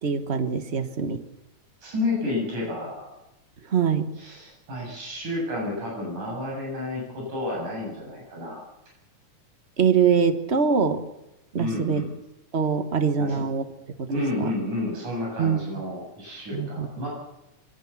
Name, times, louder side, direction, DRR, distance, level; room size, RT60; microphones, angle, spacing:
voice 1, 0.0-1.2 3.7-4.1 9.8-11.1 11.5-12.0 12.5-13.6 14.0-14.1 14.4-14.5 15.4-15.6 16.5-16.9, right 6 dB, 50° right, 9 dB, 0.7 m, -23 dB
voice 2, 1.8-3.1 4.2-8.6 11.6-12.1 13.2-13.5 14.1-17.1, left 2 dB, 80° right, -3 dB, 9.5 m, -30 dB
24.0 x 18.0 x 7.3 m, 0.92 s
omnidirectional pair, 3.5 m